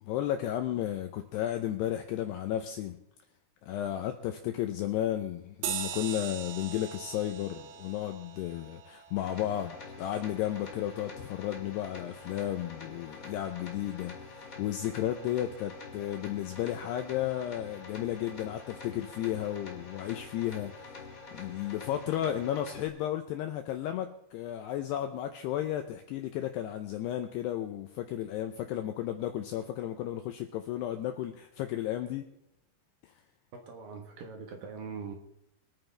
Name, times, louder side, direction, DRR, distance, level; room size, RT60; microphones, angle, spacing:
voice 1, 0.0-3.0 3.6-21.0 21.3-32.3 33.0-33.1, left 12 dB, 80° left, 2.4 m, -33 dB
sound 1, 5.6-10.5, right 10 dB, 80° right, 3.6 m, -41 dB
sound 2, 9.2-22.9, left 4 dB, 45° left, 1.1 m, -46 dB
voice 2, 33.5-35.1, right 5 dB, 65° right, 2.4 m, -42 dB
24.5 x 9.2 x 3.4 m
omnidirectional pair, 5.6 m